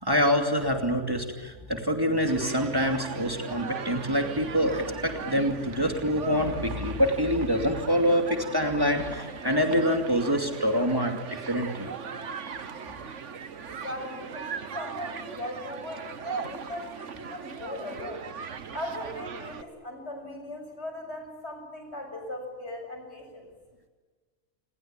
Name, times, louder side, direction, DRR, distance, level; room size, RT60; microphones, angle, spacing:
voice 1, 0.0-11.9, equal, 20° right, 4 dB, 2.7 m, -26 dB
Human group actions, 2.3-19.6, right 6 dB, 80° right, 1.6 m, -39 dB
voice 2, 13.8-18.3 18.7-23.5, left 1 dB, 65° left, 4 dB, 7.2 m, -38 dB
29.5 x 21.5 x 8.9 m, 1.4 s
omnidirectional pair, 1.2 m